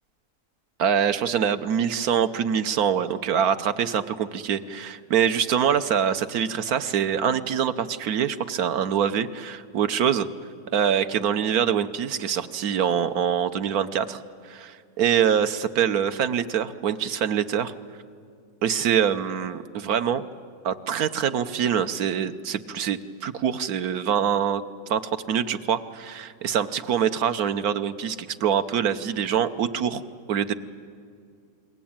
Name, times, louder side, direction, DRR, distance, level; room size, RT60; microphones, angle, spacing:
voice 1, 0.8-10.3 10.7-17.7 18.6-20.2 20.6-24.6 24.9-30.0 30.3-30.5, right 8 dB, 70° right, 11 dB, 1.4 m, -24 dB
29.5 x 21.5 x 8.8 m, 2.2 s
omnidirectional pair, 1.7 m